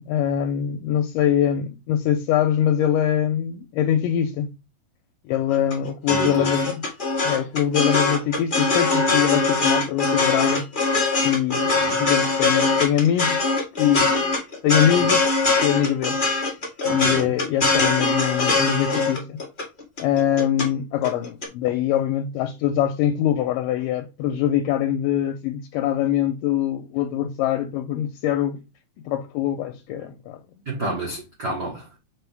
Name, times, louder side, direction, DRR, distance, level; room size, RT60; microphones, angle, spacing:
voice 1, 0.0-4.5 5.2-6.8 7.2-10.7 11.2-13.5 13.8-14.2 14.6-15.3 15.6-16.6 16.9-19.4 20.0-28.6 29.1-30.4, left 10 dB, 80° left, 2.2 m, -23 dB
sound 1, 5.5-20.7 21.0-21.5, left 3 dB, 45° left, 0.6 m, -22 dB
voice 2, 6.1-6.5 11.7-12.0 16.8-17.4 30.6-32.0, right 2 dB, 40° right, 1.5 m, -30 dB
6.5 x 4.6 x 3.5 m
omnidirectional pair, 4.1 m